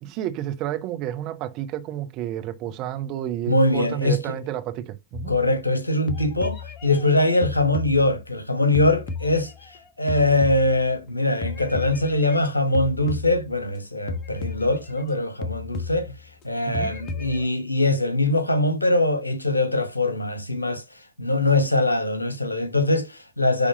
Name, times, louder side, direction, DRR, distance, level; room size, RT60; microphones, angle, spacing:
voice 1, 0.0-5.3 16.7-16.9, right 12 dB, 40° right, 1.3 m, -30 dB
voice 2, 3.5-4.4 5.3-9.5 10.0-16.1 16.4-20.8 21.2-23.7, left 2 dB, 85° left, 1.2 m, -22 dB
sound 1, 5.1-5.8 6.1-8.4 8.7-11.1 11.4-13.8 14.1-15.2 15.4-16.4 16.7-17.5, left 4 dB, 35° left, 1.3 m, -34 dB
10.5 x 3.5 x 5.4 m
figure-of-eight pair, 90°, 0 cm